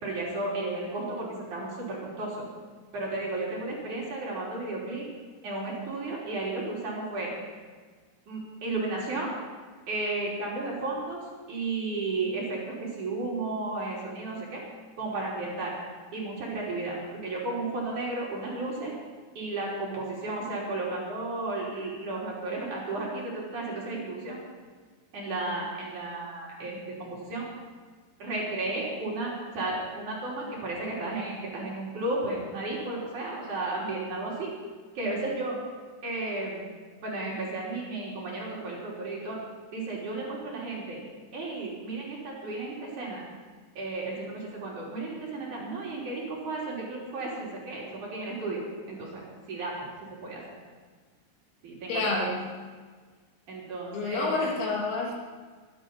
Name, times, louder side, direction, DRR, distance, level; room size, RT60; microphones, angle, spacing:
voice 1, 0.0-2.5 2.9-5.0 5.4-7.3 8.3-9.3 9.9-11.2 11.5-14.6 15.0-15.7 16.1-18.9 19.4-24.4 25.1-27.5 28.2-34.5 34.9-35.6 36.0-36.6 37.0-39.4 39.7-41.0 41.3-43.2 43.8-49.7 50.2-50.4 51.6-52.0 52.3-52.4 53.5-54.4, right 2 dB, 40° right, -5 dB, 4.2 m, -33 dB
voice 2, 51.9-52.4 53.9-55.1, left 3 dB, 85° left, -3 dB, 6.2 m, -28 dB
23.5 x 11.0 x 5.4 m, 1.5 s
omnidirectional pair, 5.9 m